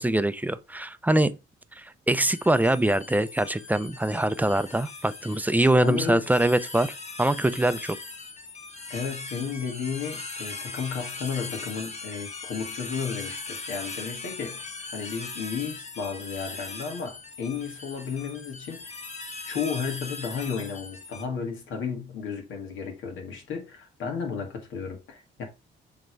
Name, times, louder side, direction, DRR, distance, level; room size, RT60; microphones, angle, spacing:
voice 1, 0.0-1.4 1.8-6.9 7.2-8.0, right 1 dB, 10° right, 0.6 m, -23 dB
sound 1, 2.3-21.2, left 3 dB, 35° left, 1.3 m, -40 dB
voice 2, 5.8-6.2 8.9-18.9 19.5-25.4, left 6 dB, 80° left, 2.0 m, -33 dB
7.7 x 3.5 x 4.6 m
cardioid pair, 90°, 20 cm